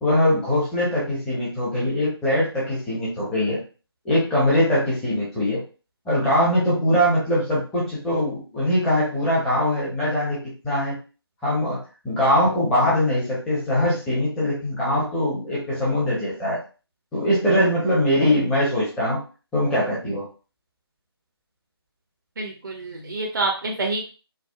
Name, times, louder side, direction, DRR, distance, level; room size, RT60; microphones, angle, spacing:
voice 1, 0.0-3.6 4.0-5.6 6.1-11.0 11.4-11.8 12.0-16.6 17.1-19.2 19.5-20.3, left 1 dB, 5° left, -8 dB, 0.8 m, -22 dB
voice 2, 22.4-24.1, right 2 dB, 50° right, 0 dB, 0.6 m, -27 dB
4.7 x 2.1 x 2.2 m, 0.34 s
figure-of-eight pair, 150°, 14 cm